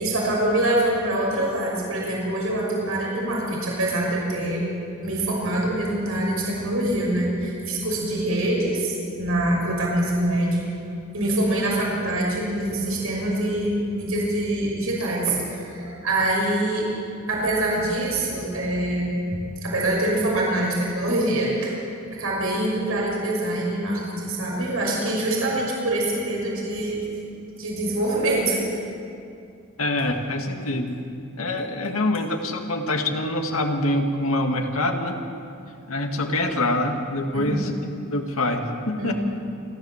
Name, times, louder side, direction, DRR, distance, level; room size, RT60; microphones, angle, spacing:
voice 1, 0.0-4.6 5.0-10.6 11.1-16.8 17.3-19.1 19.6-21.8 22.2-27.0 27.6-28.6 37.3-37.6 39.0-39.1, right 1 dB, 85° right, -3 dB, 5.9 m, -24 dB
voice 2, 29.8-31.0 31.4-35.2 35.9-37.7 38.1-39.1, left 1 dB, 90° left, 3 dB, 2.0 m, -25 dB
28.0 x 12.5 x 7.3 m, 2.5 s
head